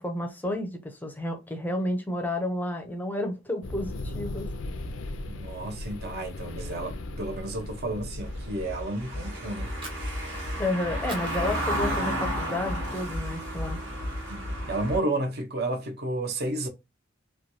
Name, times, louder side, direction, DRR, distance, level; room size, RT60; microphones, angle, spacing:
voice 1, 0.0-4.5 10.6-13.8, left 1 dB, 10° left, 0.5 m, -31 dB
sound 1, 3.6-8.8, left 2 dB, 80° left, 0.5 m, -37 dB
voice 2, 5.2-9.7 10.9-11.0 14.3-16.7, right 2 dB, 55° right, 0.6 m, -32 dB
Car passing by / Engine, 8.2-15.0, equal, 85° right, 1.3 m, -32 dB
Fire, 9.7-10.7 11.0-12.3 12.7-12.9 13.3-14.2, right 2 dB, 25° right, 0.8 m, -45 dB
3.1 x 2.2 x 2.6 m
head